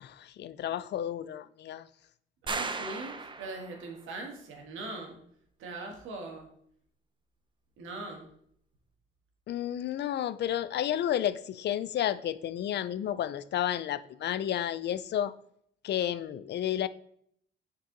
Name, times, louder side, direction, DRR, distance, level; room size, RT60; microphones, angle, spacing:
voice 1, 0.0-1.9 9.5-15.3 15.8-16.9, left 11 dB, 60° left, 0.4 m, -31 dB
voice 2, 2.4-5.2 5.6-6.5 7.8-8.3, right 2 dB, 85° right, 1.5 m, -41 dB
sound 1, 2.5-4.0, right 4 dB, 25° right, 0.6 m, -36 dB
7.3 x 4.6 x 3.8 m
cardioid pair, 90°, 20 cm